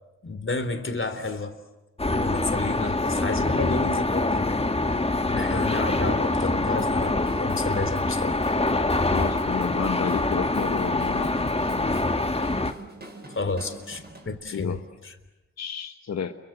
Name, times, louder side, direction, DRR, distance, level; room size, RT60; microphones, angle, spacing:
voice 1, 0.2-1.5 2.1-4.6 5.2-8.4 13.4-15.2, left 3 dB, 40° left, 10 dB, 3.6 m, -31 dB
sound 1, 2.0-12.7, left 2 dB, 20° left, 1.7 m, -25 dB
voice 2, 3.4-3.8 9.1-11.9 14.5-14.8 15.6-16.3, left 7 dB, 60° left, 8 dB, 1.3 m, -31 dB
Drum kit / Drum, 6.8-14.3, right 2 dB, 30° right, 7.1 m, -46 dB
29.0 x 23.5 x 8.1 m, 1.0 s
supercardioid pair, 45°, 30 cm